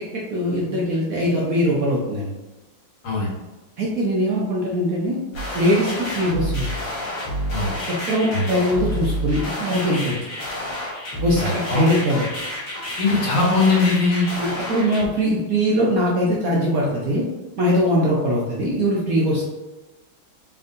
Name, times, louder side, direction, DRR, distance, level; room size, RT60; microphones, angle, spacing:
voice 1, 0.3-2.3 3.8-5.2 5.5-6.7 8.1-10.1 11.2-12.2 14.4-17.2 17.6-19.4, equal, 60° right, -4 dB, 1.0 m, -21 dB
sound 1, 5.3-15.1, left 1 dB, 55° left, 1.6 m, -29 dB
voice 2, 11.4-11.9 13.0-14.3, left 3 dB, 80° left, -4 dB, 2.0 m, -20 dB
4.3 x 3.6 x 2.5 m, 1.1 s
omnidirectional pair, 2.2 m